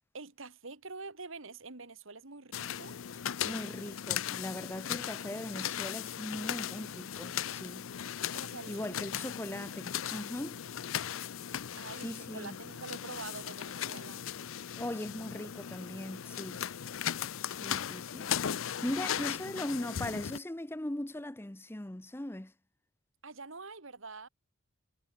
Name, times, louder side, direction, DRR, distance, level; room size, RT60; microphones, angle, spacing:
voice 1, 0.1-3.0 8.3-8.8 11.8-14.3 23.2-24.3, right 3 dB, 65° right, 2.0 m, -46 dB
sound 1, 2.5-20.4, left 9 dB, 70° left, 0.5 m, -37 dB
voice 2, 3.4-7.9 8.7-10.6 12.0-12.6 14.8-16.7 17.5-18.3 18.8-22.5, left 1 dB, 10° left, 0.7 m, -39 dB
head